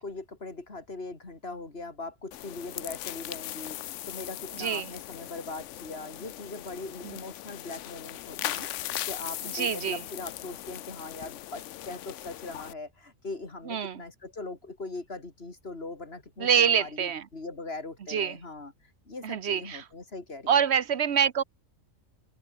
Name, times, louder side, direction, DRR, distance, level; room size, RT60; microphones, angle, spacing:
voice 1, 0.0-8.7 9.1-18.7 19.1-20.6, left 3 dB, 45° left, 3.6 m, -40 dB
sound 1, 2.3-12.7, left 14 dB, 70° left, 0.9 m, -39 dB
voice 2, 4.5-4.9 7.0-7.2 9.4-10.0 13.7-14.0 16.4-17.3 18.1-18.4 19.2-19.9 20.5-21.4, right 8 dB, 55° right, 1.2 m, -26 dB
open air
omnidirectional pair, 1.4 m